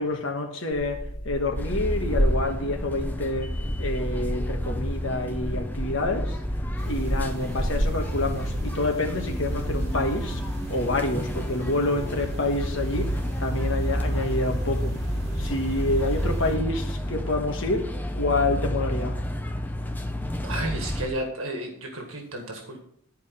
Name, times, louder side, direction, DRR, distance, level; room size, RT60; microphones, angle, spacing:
voice 1, 0.0-6.4 6.8-10.4 10.7-15.0 15.3-19.2, left 2 dB, 65° left, 1.4 m, -28 dB
sound 1, 0.7-8.7, equal, 45° left, 2.1 m, -31 dB
sound 2, 1.6-21.1, left 1 dB, 10° left, 0.6 m, -31 dB
sound 3, 6.8-16.6, right 1 dB, 50° right, 2.7 m, -34 dB
voice 2, 20.4-22.8, right 1 dB, 75° right, 1.8 m, -32 dB
11.5 x 4.7 x 5.6 m
head